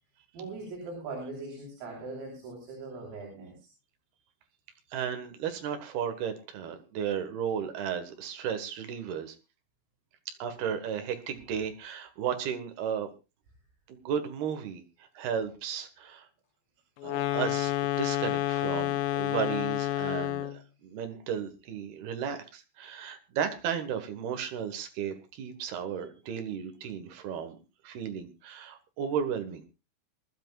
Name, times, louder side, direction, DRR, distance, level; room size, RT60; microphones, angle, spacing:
voice 1, 0.3-3.7, right 3 dB, 85° right, 0 dB, 7.1 m, -40 dB
voice 2, 4.9-9.3 10.3-13.1 13.9-14.8 15.1-16.3 17.0-27.6 27.8-29.6, right 8 dB, 65° right, 8 dB, 3.0 m, -34 dB
sound 1, 17.0-20.7, left 14 dB, 90° left, 3.7 m, -29 dB
25.0 x 12.0 x 2.4 m, 0.28 s
omnidirectional pair, 5.8 m